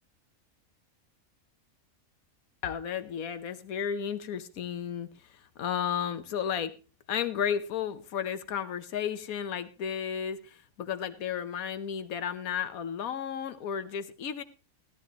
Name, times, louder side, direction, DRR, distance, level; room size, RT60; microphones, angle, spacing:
voice 1, 2.6-6.8 7.1-14.4, left 8 dB, 80° left, 10 dB, 1.4 m, -33 dB
16.5 x 11.5 x 3.0 m, 0.32 s
omnidirectional pair, 1.5 m